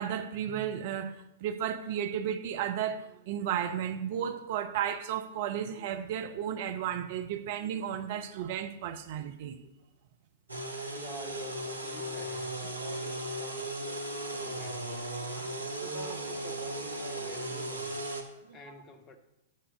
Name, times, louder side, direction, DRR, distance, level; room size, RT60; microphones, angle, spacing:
voice 1, 0.0-9.6 15.3-15.7 16.0-16.1 18.5-18.6, right 9 dB, 45° right, 0.7 m, -34 dB
sound 1, 10.5-18.2, right 1 dB, 80° right, 1.0 m, -36 dB
voice 2, 10.9-15.1 15.8-18.0 18.5-19.2, left 3 dB, 25° left, 0.9 m, -49 dB
7.5 x 5.6 x 4.9 m
figure-of-eight pair, 105°, 0 cm